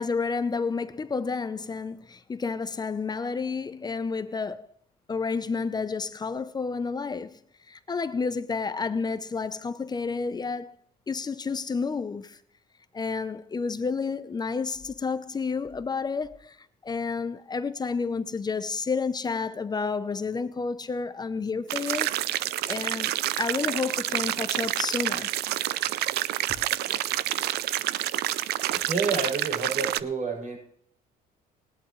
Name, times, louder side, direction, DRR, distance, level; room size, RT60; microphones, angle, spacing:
voice 1, 0.0-4.7 5.1-7.4 7.7-10.8 11.1-12.4 12.9-16.6 16.8-22.4 22.7-25.4, left 4 dB, 25° left, 0.7 m, -30 dB
sound 1, 21.7-30.0, right 14 dB, 75° right, 0.5 m, -28 dB
voice 2, 28.9-30.6, right 4 dB, 50° right, 7.2 m, -29 dB
19.0 x 11.5 x 3.2 m
cardioid pair, 110°, 17 cm